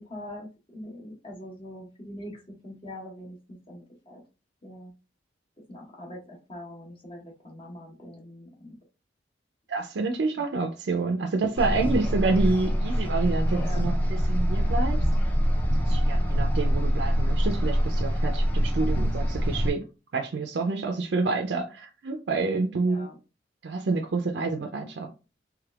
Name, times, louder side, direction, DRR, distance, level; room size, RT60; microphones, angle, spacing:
voice 1, 0.0-4.2 4.6-4.9 5.7-8.8 10.4-10.7 13.6-13.9 16.1-16.5 22.9-23.2, left 1 dB, 30° left, 1.1 m, -43 dB
voice 2, 9.7-15.0 15.9-19.8 20.1-23.1 23.6-25.1, right 3 dB, 65° right, 0.4 m, -28 dB
sound 1, 11.6-19.7, equal, 10° left, 0.5 m, -24 dB
3.3 x 3.1 x 2.3 m
head